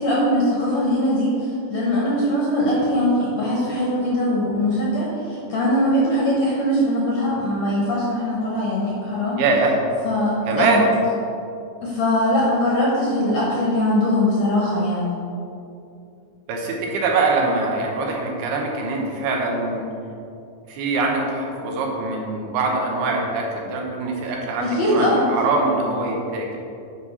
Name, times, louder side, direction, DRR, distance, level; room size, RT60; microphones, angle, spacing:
voice 1, 0.0-9.4 10.0-10.8 11.8-15.1 24.6-25.3, left 1 dB, 65° left, -5 dB, 1.8 m, -21 dB
voice 2, 9.4-9.8 10.5-10.9 16.5-19.9 20.7-26.6, right 3 dB, 80° right, 0 dB, 3.0 m, -23 dB
8.5 x 4.9 x 5.5 m, 2.6 s
omnidirectional pair, 4.5 m